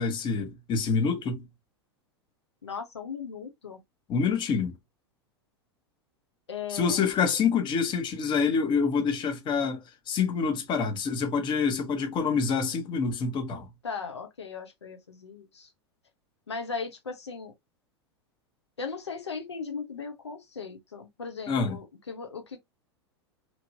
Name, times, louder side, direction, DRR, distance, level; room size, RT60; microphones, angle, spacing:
voice 1, 0.0-1.4 4.1-4.7 6.7-13.7 21.5-21.8, left 5 dB, 35° left, 1.0 m, -27 dB
voice 2, 2.6-3.8 6.5-7.0 13.8-15.7 16.5-17.5 18.8-22.6, left 5 dB, 85° left, 0.8 m, -37 dB
3.0 x 2.8 x 2.6 m
hypercardioid pair, 95°, 14 cm